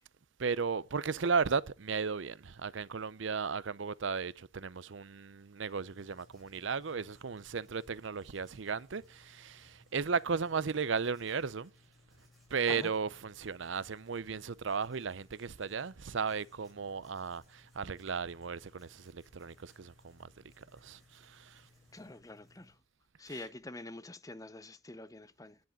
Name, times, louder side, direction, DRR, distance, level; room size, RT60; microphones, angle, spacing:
voice 1, 0.4-11.7 12.5-21.7 23.3-23.4, right 5 dB, 65° right, 0.6 m, -35 dB
Writing, 5.7-22.7, left 2 dB, ahead, 6.1 m, -64 dB
voice 2, 21.9-22.8 23.2-25.6, left 2 dB, 15° left, 0.7 m, -46 dB
10.5 x 10.5 x 5.2 m
head